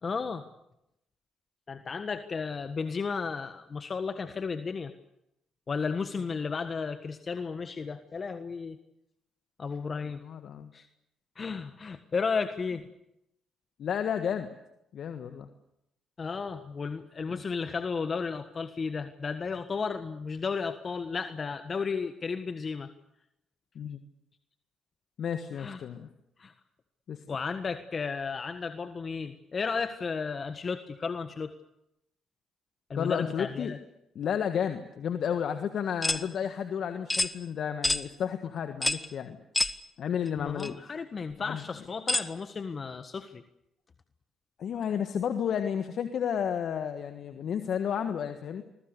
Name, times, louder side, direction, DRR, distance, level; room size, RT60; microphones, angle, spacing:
voice 1, 0.0-0.5 1.7-4.9 5.7-8.8 9.6-10.2 10.7-10.9 11.4-12.8 16.2-22.9 25.6-25.8 26.4-26.5 27.3-31.5 32.9-33.8 40.4-43.4, left 5 dB, 45° left, 9 dB, 1.5 m, -33 dB
voice 2, 10.2-10.7 13.8-14.5 14.9-15.5 17.3-17.4 23.7-24.0 25.2-26.1 27.1-27.2 33.0-33.7 34.1-39.4 40.0-40.9 41.4-41.6 44.6-48.6, left 8 dB, 65° left, 8 dB, 1.5 m, -32 dB
sound 1, 36.0-36.2 37.1-37.3 37.8-38.0 38.8-39.1 39.5-39.8 40.6-40.7 42.1-42.3, left 1 dB, 15° left, 1.4 m, -27 dB
28.5 x 22.0 x 6.8 m, 0.84 s
hypercardioid pair, 50°, 0 cm